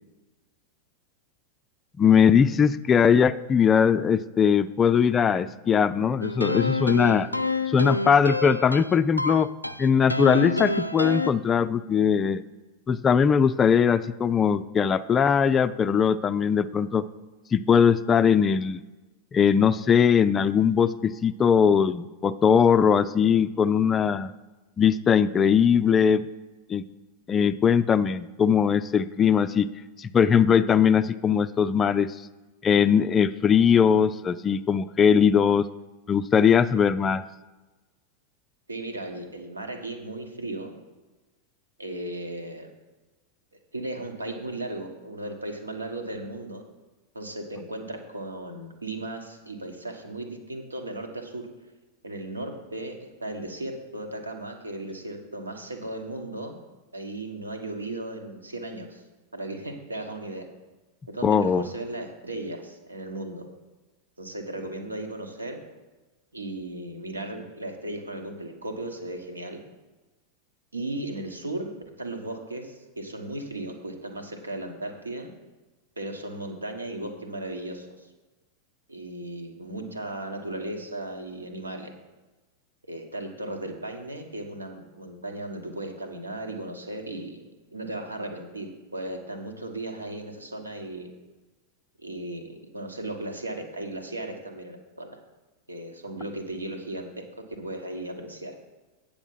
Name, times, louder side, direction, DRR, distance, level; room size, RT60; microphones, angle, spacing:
voice 1, 2.0-7.3 7.7-9.5 9.8-12.4 12.9-17.0 17.5-18.8 19.3-24.3 24.8-26.2 26.7-26.8 27.3-29.7 30.0-32.1 32.6-35.7 36.1-37.2 61.2-61.7, left 7 dB, 20° left, 12 dB, 0.3 m, -20 dB
sound 1, 6.2-11.3, left 2 dB, 90° left, 0.4 m, -28 dB
voice 2, 38.7-40.7 41.8-42.7 43.7-46.6 47.1-51.5 52.0-56.6 56.9-59.0 59.3-60.5 61.1-63.5 64.2-65.6 66.3-69.6 70.7-71.7 72.0-75.3 76.0-78.1 78.9-81.9 82.8-87.4 87.7-91.1 92.0-95.2 95.7-98.5, right 2 dB, 80° right, 4 dB, 1.4 m, -36 dB
9.1 x 7.0 x 5.5 m, 1.2 s
figure-of-eight pair, 90°, 0 cm